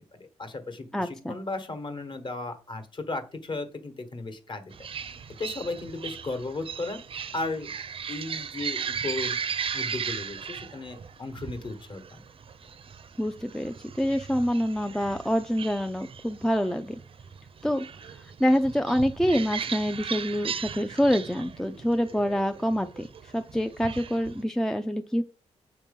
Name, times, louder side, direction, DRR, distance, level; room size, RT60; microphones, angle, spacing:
voice 1, 0.1-4.7 5.4-7.0 7.3-7.7 8.1-9.4 9.7-12.2, left 2 dB, 40° left, 8 dB, 1.2 m, -35 dB
voice 2, 0.9-1.4 13.2-17.0 17.6-17.9 18.4-25.2, equal, 5° left, 7 dB, 0.4 m, -26 dB
sound 1, 4.7-24.4, right 6 dB, 50° right, 0.6 m, -37 dB
7.2 x 2.9 x 5.3 m, 0.37 s
cardioid pair, 90°, 12 cm